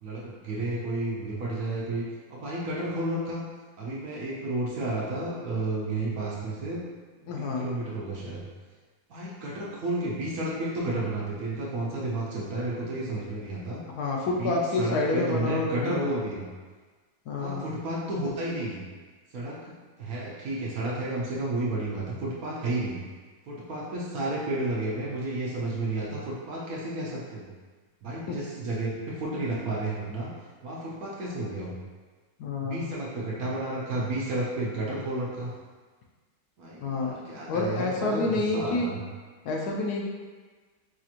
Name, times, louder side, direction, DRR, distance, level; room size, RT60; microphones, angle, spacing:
voice 1, 0.0-3.4 3.8-6.8 7.2-8.4 9.1-13.8 14.4-16.5 17.4-18.8 19.3-23.0 23.5-27.5 28.0-30.3 30.6-31.8 32.6-35.5 36.6-39.0, right 2 dB, 65° right, -5 dB, 1.0 m, -32 dB
voice 2, 7.3-7.7 14.0-16.1 17.3-17.6 28.3-28.4 32.4-32.9 36.8-37.1 37.5-38.9 39.4-40.1, left 3 dB, 70° left, -1 dB, 1.0 m, -28 dB
5.0 x 2.9 x 2.4 m, 1.4 s
omnidirectional pair, 2.0 m